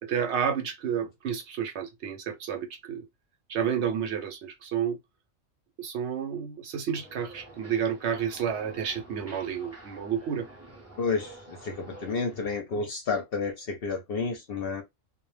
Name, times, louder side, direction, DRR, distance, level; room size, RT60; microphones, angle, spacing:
voice 1, 0.0-3.1 3.5-5.0 5.8-10.5, right 8 dB, 65° right, 0.8 m, -30 dB
sound 1, 6.9-12.6, right 1 dB, 20° right, 0.4 m, -49 dB
voice 2, 11.0-14.8, left 4 dB, 60° left, 0.6 m, -31 dB
2.1 x 2.0 x 3.1 m
omnidirectional pair, 1.3 m